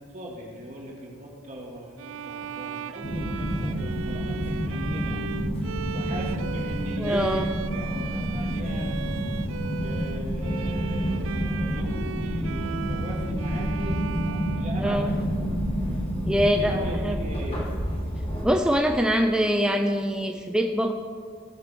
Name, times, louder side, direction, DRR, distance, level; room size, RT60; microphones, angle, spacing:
voice 1, 0.0-5.2 5.9-7.4 7.7-8.9 9.8-14.0 14.5-15.4 16.6-17.6, right 1 dB, 35° right, -2 dB, 2.4 m, -39 dB
Bowed string instrument, 2.0-15.4, right 8 dB, 70° right, 0.4 m, -38 dB
sound 1, 3.0-18.4, equal, 30° left, 2.4 m, -29 dB
voice 2, 7.0-7.5 14.8-15.2 16.3-17.2 18.4-20.9, equal, 5° right, 4 dB, 0.5 m, -24 dB
16.5 x 7.8 x 5.3 m, 2.1 s
head